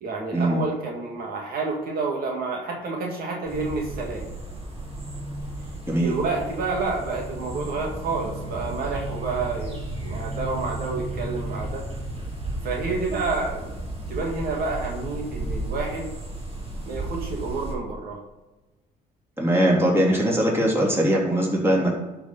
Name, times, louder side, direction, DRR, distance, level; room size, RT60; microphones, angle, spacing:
voice 1, 0.0-4.2 6.0-11.9 12.6-13.7 14.1-16.1 16.8-18.2, right 3 dB, 65° right, 0 dB, 2.1 m, -29 dB
sound 1, 3.5-17.7, right 1 dB, 35° right, 3.5 m, -33 dB
voice 2, 19.4-21.9, right 1 dB, 15° right, -3 dB, 3.5 m, -21 dB
11.5 x 4.7 x 5.5 m, 1.1 s
cardioid pair, 110°, 17 cm